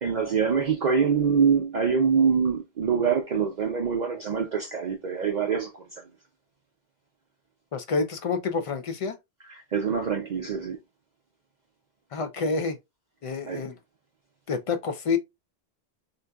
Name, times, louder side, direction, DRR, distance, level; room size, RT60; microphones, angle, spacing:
voice 1, 0.0-5.7 9.7-10.8 13.5-13.6, right 6 dB, 55° right, 0.6 m, -24 dB
voice 2, 7.7-9.2 12.1-12.8 13.2-13.7 14.5-15.2, left 4 dB, 55° left, 0.3 m, -28 dB
3.8 x 2.6 x 2.2 m
omnidirectional pair, 1.0 m